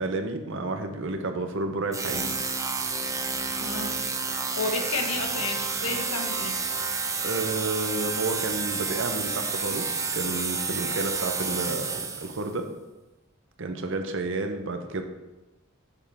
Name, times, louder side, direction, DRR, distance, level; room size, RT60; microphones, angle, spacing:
voice 1, 0.0-2.3 7.2-12.7 13.6-15.0, right 3 dB, 65° right, 6 dB, 0.9 m, -31 dB
sound 1, 1.9-12.5, right 4 dB, 15° right, 0.7 m, -30 dB
voice 2, 3.6-4.0 4.6-6.6, left 3 dB, 80° left, 4 dB, 1.1 m, -31 dB
7.2 x 7.2 x 3.5 m, 1.0 s
head